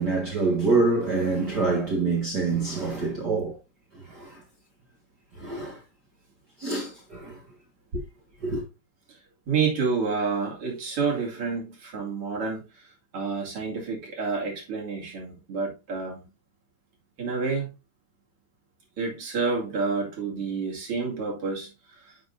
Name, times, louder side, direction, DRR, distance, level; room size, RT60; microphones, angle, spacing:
voice 1, 0.0-3.5 4.1-4.4 5.4-5.8 6.6-7.3 8.4-8.6, right 3 dB, 85° right, 0.9 m, -26 dB
voice 2, 9.5-16.3 17.2-17.7 19.0-22.1, right 4 dB, 40° right, 2.8 m, -29 dB
10.0 x 6.6 x 2.6 m
omnidirectional pair, 4.8 m